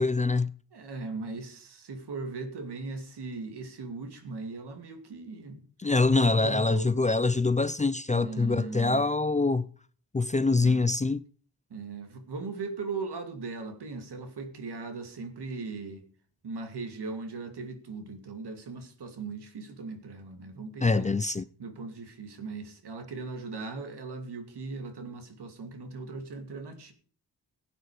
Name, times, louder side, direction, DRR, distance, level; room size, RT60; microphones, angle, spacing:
voice 1, 0.0-0.5 5.8-9.7 10.1-11.2 20.8-21.4, left 3 dB, 20° left, 0.5 m, -24 dB
voice 2, 0.7-5.6 6.3-7.0 8.1-9.0 10.5-10.8 11.7-16.0 16.4-21.1 21.6-26.9, right 4 dB, 75° right, 2.5 m, -39 dB
16.5 x 8.9 x 5.0 m
wide cardioid pair, 100°, 40 cm